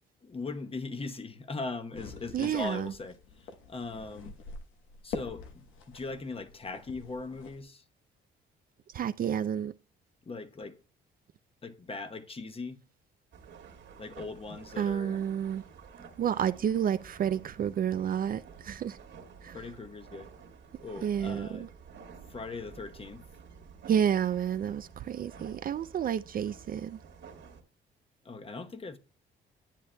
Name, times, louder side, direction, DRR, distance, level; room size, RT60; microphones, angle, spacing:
voice 1, 0.2-4.4 5.0-7.8 10.2-10.8 11.6-12.8 14.0-15.2 19.5-20.3 20.8-21.7 22.3-23.2 28.2-29.0, left 3 dB, 30° left, 0.9 m, -40 dB
sound 1, 1.9-7.6, left 4 dB, 90° left, 1.1 m, -45 dB
voice 2, 2.3-2.9 8.9-9.7 14.8-15.6 16.2-19.0 19.4-19.6 21.0-21.7 23.9-27.0, right 9 dB, 45° right, 0.4 m, -30 dB
sound 2, 13.3-27.6, right 6 dB, 70° right, 1.9 m, -51 dB
10.0 x 8.3 x 2.2 m
cardioid pair, 90°, 20 cm